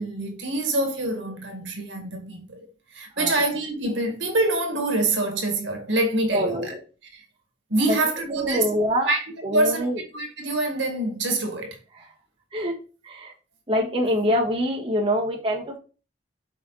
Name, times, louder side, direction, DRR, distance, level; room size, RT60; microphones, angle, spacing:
voice 1, 0.0-6.7 7.1-7.2 7.7-8.7 9.1-9.3 9.5-9.9 10.1-11.8, right 2 dB, 85° right, 1.9 m, -25 dB
voice 2, 6.3-6.8 7.9-8.0 8.3-9.1 9.4-10.0 12.5-12.7 13.0-13.3 13.7-15.8, equal, 30° right, 1.6 m, -24 dB
5.9 x 4.8 x 4.1 m
head